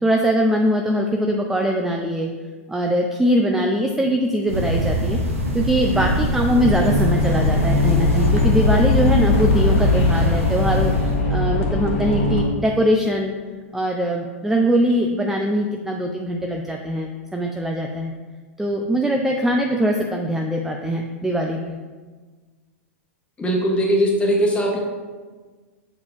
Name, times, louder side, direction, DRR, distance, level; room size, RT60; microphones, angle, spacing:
voice 1, 0.0-2.3 2.7-5.2 5.5-10.9 11.3-13.3 13.7-18.1 18.6-21.8, equal, 5° right, 2 dB, 0.4 m, -22 dB
sound 1, 4.5-11.2, left 1 dB, 90° right, 1.2 m, -24 dB
sound 2, 6.5-12.4, left 2 dB, 65° left, 1.4 m, -20 dB
voice 2, 23.4-24.8, equal, 15° left, -1 dB, 1.4 m, -19 dB
6.5 x 4.8 x 3.3 m, 1.4 s
hypercardioid pair, 110°, 7 cm